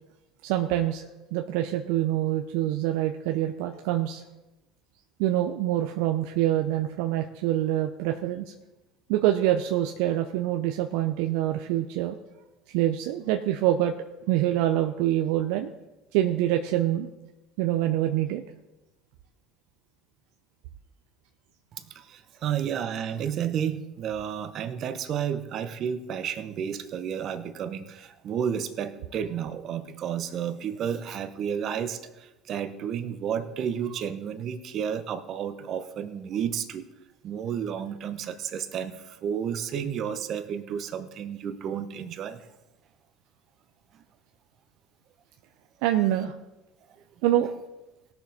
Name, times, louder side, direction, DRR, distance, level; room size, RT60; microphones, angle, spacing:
voice 1, 0.4-1.0 1.3-4.2 5.2-8.5 9.1-12.2 12.7-13.9 14.3-15.7 16.1-17.1 17.6-18.4 45.8-46.3 47.2-47.5, right 13 dB, 70° right, 5 dB, 0.6 m, -25 dB
voice 2, 21.7-36.9 37.2-42.5, right 8 dB, 55° right, 11 dB, 1.0 m, -31 dB
18.0 x 6.9 x 4.1 m, 0.99 s
hypercardioid pair, 70°, 0 cm